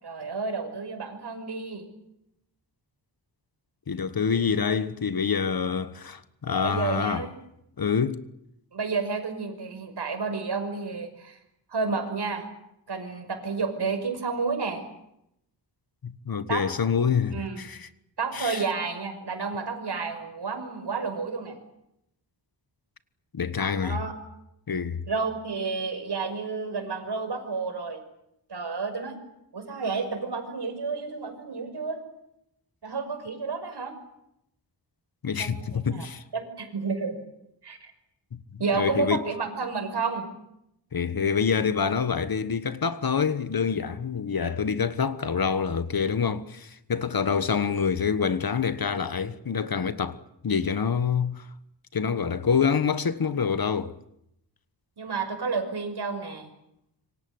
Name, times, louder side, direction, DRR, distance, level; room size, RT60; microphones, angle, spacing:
voice 1, 0.0-1.9 6.6-7.3 8.7-11.4 11.7-12.5 12.9-14.8 16.5-16.6 17.3-17.6 18.2-21.6 23.8-24.1 25.1-28.0 28.5-29.2 29.5-32.0 32.8-33.9 35.4-36.1 36.3-37.2 37.6-37.9 38.6-40.3 55.0-56.5, right 4 dB, 65° right, 6.0 m, -31 dB
voice 2, 3.9-7.2 7.8-8.2 16.0-17.9 18.3-18.6 23.3-24.0 24.7-25.0 35.2-36.2 38.7-39.2 40.9-51.5 51.9-54.0, left 6 dB, 55° left, 1.5 m, -26 dB
27.0 x 24.5 x 8.0 m
wide cardioid pair, 140°, 43 cm